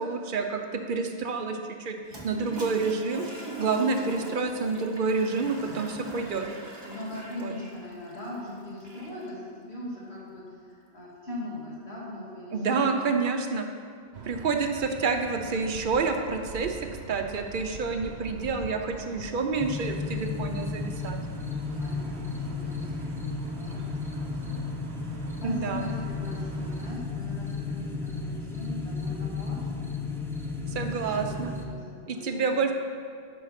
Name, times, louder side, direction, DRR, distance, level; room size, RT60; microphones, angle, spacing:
voice 1, 0.0-2.0 2.2-3.2 3.6-6.5 7.3-7.5 12.5-13.7 14.2-16.8 17.1-21.2 25.4-25.9 30.7-31.5 32.1-32.7, right 4 dB, 55° right, 5 dB, 0.8 m, -28 dB
Toilet flush, 2.0-9.3, right 1 dB, 25° right, 1.0 m, -42 dB
voice 2, 6.9-13.0 21.8-23.1 23.5-23.8 24.1-30.0 30.6-32.5, left 1 dB, 75° left, -7 dB, 2.4 m, -40 dB
sound 1, 14.1-26.9, right 5 dB, 80° right, 1.0 m, -44 dB
sound 2, 19.6-31.6, left 4 dB, 5° left, 0.5 m, -33 dB
8.2 x 5.5 x 5.7 m, 2.2 s
omnidirectional pair, 1.1 m